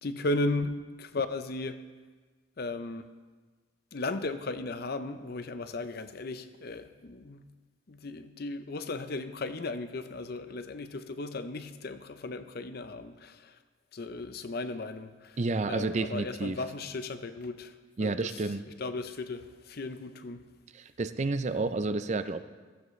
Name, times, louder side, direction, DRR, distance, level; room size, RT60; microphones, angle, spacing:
voice 1, 0.0-1.8 2.6-3.1 3.9-7.4 7.9-13.5 13.9-15.4 15.7-17.7 18.0-18.4 18.8-20.4, left 2 dB, 50° left, 0.7 m, -36 dB
voice 2, 15.4-16.6 18.0-18.6 20.7-22.4, right 3 dB, 35° right, 0.5 m, -30 dB
15.5 x 15.0 x 3.2 m
head